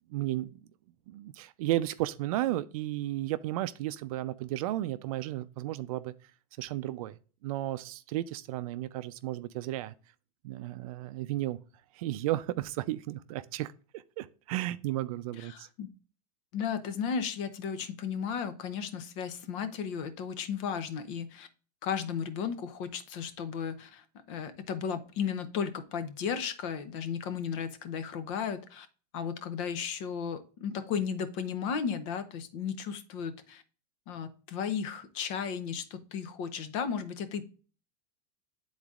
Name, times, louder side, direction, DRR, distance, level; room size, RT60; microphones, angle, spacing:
voice 1, 0.1-0.6 1.1-6.1 6.6-7.1 7.4-9.9 10.4-11.6 11.9-15.7, right 15 dB, 60° right, 0.4 m, -33 dB
voice 2, 15.3-15.9 16.5-21.5 21.8-28.9 29.1-33.6 34.1-37.5, left 7 dB, 50° left, 0.8 m, -34 dB
10.0 x 4.0 x 2.4 m
supercardioid pair, 155°, 21 cm